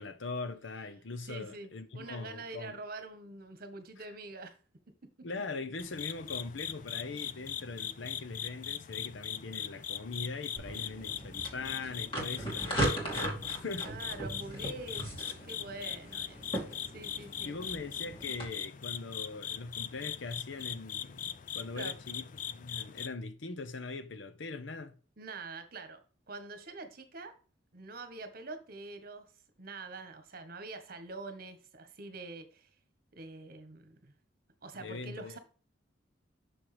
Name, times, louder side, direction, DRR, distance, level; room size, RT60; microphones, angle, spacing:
voice 1, 0.0-2.8 5.2-13.9 17.4-25.0 34.8-35.4, left 3 dB, 85° left, 0.8 m, -41 dB
voice 2, 1.3-4.5 13.8-16.5 16.8-17.5 21.7-21.9 25.2-26.0 26.3-27.3 27.7-29.3 29.6-32.7 33.1-34.1 34.6-35.4, right 3 dB, 55° right, 1.3 m, -45 dB
sound 1, 5.8-23.1, left 9 dB, 45° left, 0.4 m, -40 dB
sound 2, 10.6-18.5, right 1 dB, 30° left, 2.6 m, -38 dB
6.4 x 6.2 x 3.3 m
head